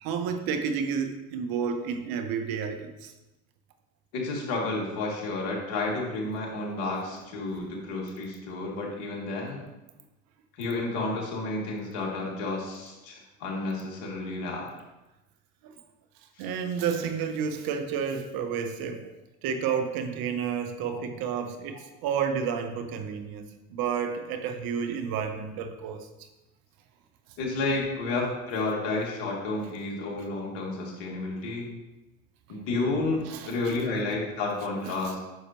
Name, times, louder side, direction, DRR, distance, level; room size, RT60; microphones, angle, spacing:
voice 1, 0.0-3.1 15.6-15.7 16.4-19.1 19.4-26.1 33.3-33.5 35.0-35.1, right 7 dB, 50° right, 7 dB, 1.0 m, -31 dB
voice 2, 4.1-9.6 10.6-14.6 16.4-16.5 20.9-21.0 27.4-31.7 32.5-35.2, left 2 dB, 60° left, -2 dB, 2.7 m, -31 dB
9.1 x 6.5 x 3.1 m, 1.0 s
hypercardioid pair, 95°, 45 cm